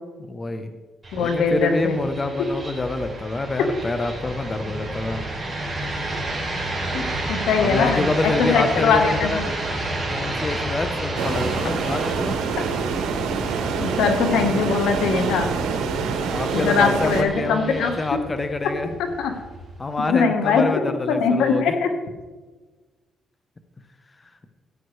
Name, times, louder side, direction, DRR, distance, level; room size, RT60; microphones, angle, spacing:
voice 1, 0.2-0.7 1.2-5.2 7.6-9.8 10.1-12.4 15.8-19.0 19.8-21.7, left 2 dB, 25° left, 8 dB, 0.9 m, -27 dB
sound 1, 1.0-20.0, right 1 dB, 20° right, 3.5 m, -31 dB
voice 2, 1.1-2.0 6.9-9.4 13.8-15.5 16.5-17.9 19.2-19.3 20.1-20.6 21.1-21.9, left 5 dB, 85° left, 6 dB, 1.2 m, -21 dB
sound 2, 11.2-17.2, right 5 dB, 85° right, 1.1 m, -26 dB
14.5 x 9.5 x 3.2 m, 1.3 s
cardioid pair, 90°, 0 cm